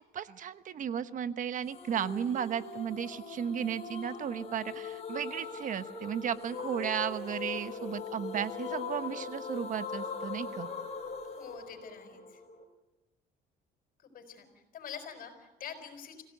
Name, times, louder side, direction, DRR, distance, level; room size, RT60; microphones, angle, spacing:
voice 1, 0.1-10.7, right 8 dB, 50° right, 12 dB, 1.1 m, -34 dB
sound 1, 1.7-12.6, left 5 dB, 40° left, 4.5 m, -41 dB
voice 2, 11.4-12.4 14.0-16.2, left 7 dB, 55° left, 5 dB, 5.6 m, -45 dB
26.0 x 17.0 x 8.1 m, 1.0 s
cardioid pair, 110°, 17 cm